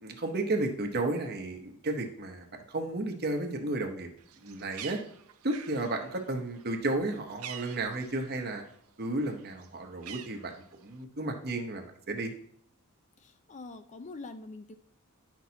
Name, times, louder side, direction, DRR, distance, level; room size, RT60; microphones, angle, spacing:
voice 1, 0.0-4.1 4.4-5.0 5.4-8.6 9.0-10.5 10.8-12.3, right 2 dB, 45° right, 4 dB, 0.9 m, -33 dB
Bird, 4.2-8.8 9.1-11.0, right 9 dB, 75° right, 0.6 m, -47 dB
voice 2, 13.2-14.7, left 3 dB, 30° left, 9 dB, 0.4 m, -44 dB
10.5 x 6.0 x 2.8 m, 0.66 s
head